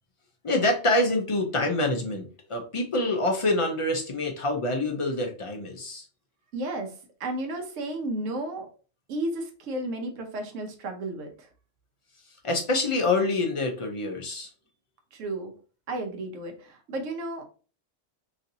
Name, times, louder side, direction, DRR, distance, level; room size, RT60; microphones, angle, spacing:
voice 1, 0.4-6.0 12.4-14.5, left 2 dB, 40° left, 2 dB, 0.4 m, -26 dB
voice 2, 6.5-6.9 7.2-8.7 9.1-11.5 15.1-15.5 15.9-17.4, right 1 dB, 80° right, 4 dB, 1.0 m, -33 dB
3.0 x 2.7 x 2.6 m, 0.37 s
omnidirectional pair, 1.3 m